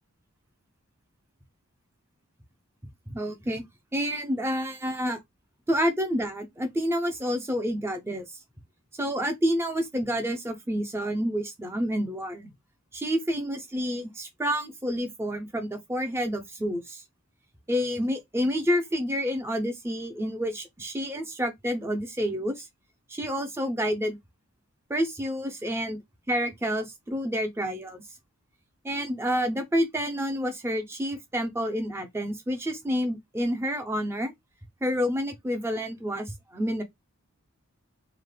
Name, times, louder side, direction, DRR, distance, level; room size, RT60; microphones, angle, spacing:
voice 1, 3.1-3.6 3.9-5.2 5.7-8.3 9.0-12.5 12.9-17.0 17.7-22.7 23.1-24.2 24.9-26.0 26.3-28.0 28.8-34.3 34.8-36.8, equal, 10° right, 0.4 m, -29 dB
3.1 x 2.0 x 2.2 m
head